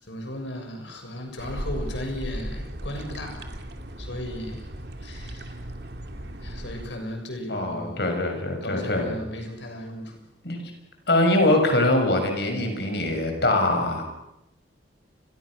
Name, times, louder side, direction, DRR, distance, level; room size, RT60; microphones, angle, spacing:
voice 1, 0.0-3.6 4.0-4.7 5.0-5.6 6.4-8.1 8.6-10.2, left 1 dB, 80° left, 4 dB, 6.7 m, -36 dB
sound 1, 1.4-6.9, right 1 dB, 60° right, 2.5 m, -36 dB
voice 2, 7.5-9.1 10.4-10.6 11.1-14.0, left 1 dB, 60° left, 4 dB, 6.7 m, -23 dB
30.0 x 23.0 x 6.5 m, 0.88 s
head